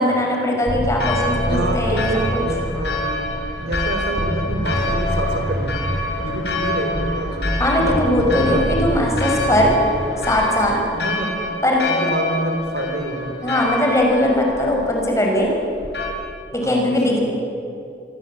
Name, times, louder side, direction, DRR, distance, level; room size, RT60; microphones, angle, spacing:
voice 1, 0.0-2.4 7.6-9.7 10.3-10.8 11.6-11.8 13.4-15.5 16.5-17.2, left 1 dB, 15° left, 0 dB, 6.1 m, -19 dB
sound 1, 0.7-10.7, equal, 30° right, 2.1 m, -27 dB
Church bell, 1.0-16.1, left 2 dB, 70° left, 6.9 m, -27 dB
voice 2, 1.3-8.9 10.9-11.5 11.9-13.4 16.6-17.2, right 1 dB, 70° right, 4 dB, 4.5 m, -27 dB
27.5 x 22.5 x 8.7 m, 2.8 s
head